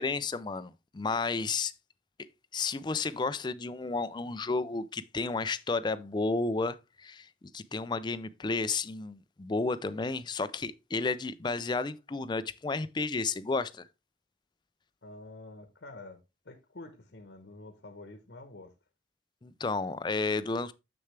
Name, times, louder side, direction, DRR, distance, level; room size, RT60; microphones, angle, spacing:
voice 1, 0.0-1.7 2.5-13.9 19.4-20.7, left 3 dB, 25° left, 0.4 m, -32 dB
voice 2, 15.0-16.2 16.4-18.7, left 2 dB, 75° left, 1.0 m, -48 dB
6.9 x 6.5 x 3.3 m
head